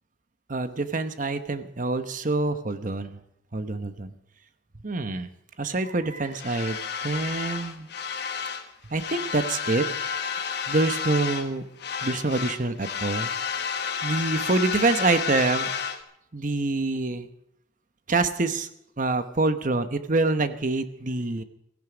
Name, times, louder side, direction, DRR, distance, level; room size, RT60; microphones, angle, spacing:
voice 1, 0.5-3.2 3.5-4.1 4.8-5.3 5.6-7.9 8.9-9.8 10.7-11.6 12.0-13.3 14.0-15.7 16.3-17.3 18.1-18.7 19.0-21.4, right 3 dB, 45° right, 10 dB, 1.0 m, -26 dB
sound 1, 6.3-8.7 8.9-11.5 11.8-16.0, left 6 dB, 55° left, 1.2 m, -31 dB
17.0 x 15.0 x 5.0 m, 0.79 s
head